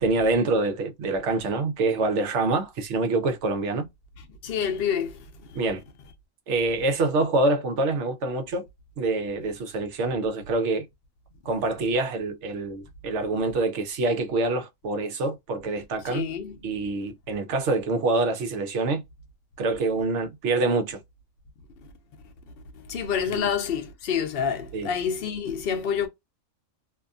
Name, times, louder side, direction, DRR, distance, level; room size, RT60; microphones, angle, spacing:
voice 1, 0.0-3.8 5.5-5.8 6.5-8.7 9.0-10.8 11.4-16.3 16.6-19.0 19.6-21.0 23.3-23.5 24.7-24.9, right 3 dB, 65° right, 0.9 m, -26 dB
voice 2, 4.4-5.6 16.1-16.6 22.7-26.1, left 7 dB, 55° left, 0.7 m, -28 dB
2.7 x 2.5 x 2.2 m
omnidirectional pair, 1.4 m